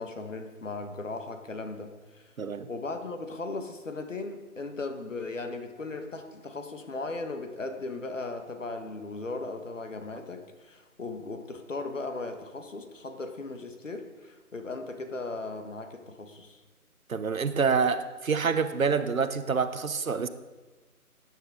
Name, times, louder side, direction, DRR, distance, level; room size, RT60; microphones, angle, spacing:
voice 1, 0.0-2.3 2.7-16.6, left 3 dB, 55° left, 6 dB, 1.5 m, -37 dB
voice 2, 2.4-2.7 17.1-20.3, right 5 dB, 65° right, 11 dB, 0.9 m, -27 dB
18.5 x 9.2 x 3.7 m, 1.2 s
figure-of-eight pair, 175°, 44 cm